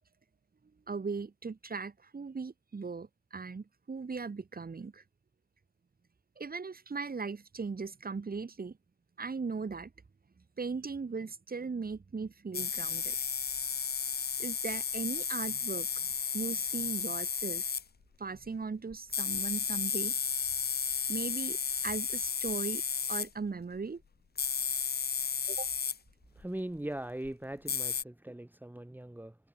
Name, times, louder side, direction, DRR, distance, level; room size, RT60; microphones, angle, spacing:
voice 1, 0.9-5.0 6.4-8.8 9.2-9.9 10.6-13.2 14.4-16.1 16.3-17.7 18.2-20.2 21.1-24.0 25.5-25.7, right 4 dB, 30° right, 3.8 m, -38 dB
sound 1, 12.5-17.8 18.9-23.3 24.4-26.0 26.4-26.5 27.2-27.3 27.7-28.0, left 6 dB, 30° left, 1.1 m, -33 dB
voice 2, 26.3-29.4, right 1 dB, 5° right, 2.8 m, -40 dB
cardioid pair, 90°, 30 cm